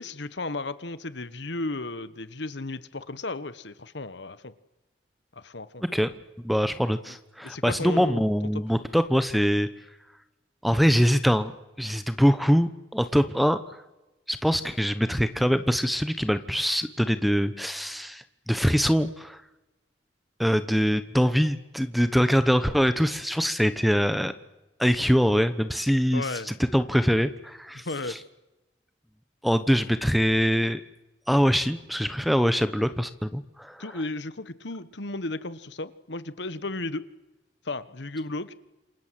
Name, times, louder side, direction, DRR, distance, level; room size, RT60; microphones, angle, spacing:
voice 1, 0.0-4.5 5.3-5.8 7.1-7.2 7.4-8.2 26.1-26.5 27.8-28.2 33.8-37.0 37.6-38.5, left 2 dB, 70° left, 14 dB, 1.3 m, -34 dB
voice 2, 6.4-9.7 10.6-11.5 11.8-13.6 14.3-19.4 20.4-24.3 24.8-28.1 29.4-30.8 31.3-33.8, equal, ahead, 12 dB, 1.0 m, -23 dB
28.0 x 24.0 x 7.7 m, 1.0 s
head